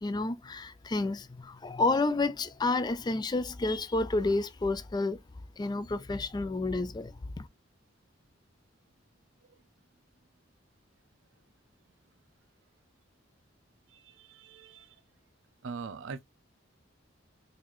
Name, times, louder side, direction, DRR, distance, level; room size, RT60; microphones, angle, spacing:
voice 1, 0.0-5.2 5.6-7.5, left 2 dB, 20° left, 0.3 m, -30 dB
voice 2, 13.9-14.9 15.6-16.2, right 5 dB, 80° right, 0.5 m, -42 dB
3.9 x 2.6 x 3.0 m
head